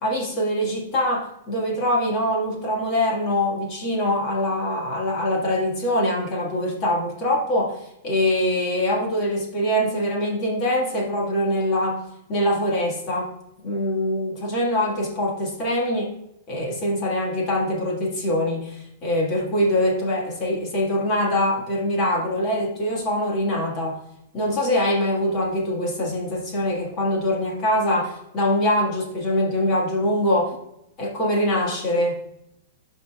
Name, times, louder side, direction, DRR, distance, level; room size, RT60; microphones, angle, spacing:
voice 1, 0.0-12.0 12.3-13.3 13.6-16.1 16.5-24.0 24.3-30.6 31.0-32.2, left 1 dB, 25° left, -1 dB, 1.7 m, -23 dB
11.0 x 5.2 x 2.3 m, 0.81 s
supercardioid pair, 180°, 0 cm